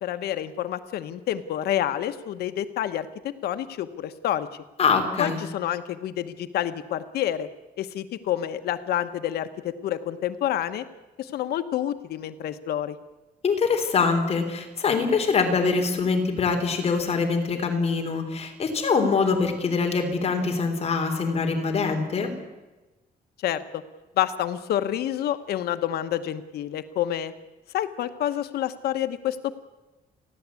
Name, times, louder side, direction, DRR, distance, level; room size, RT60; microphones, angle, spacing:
voice 1, 0.0-4.5 5.2-7.5 7.8-10.8 11.2-13.0 23.4-23.8 24.2-27.3 27.7-29.5, left 11 dB, 90° left, 10 dB, 1.1 m, -28 dB
voice 2, 4.8-5.4 13.4-22.3, left 4 dB, 40° left, 4 dB, 3.5 m, -24 dB
30.0 x 12.0 x 8.3 m, 1.1 s
cardioid pair, 155°, 16 cm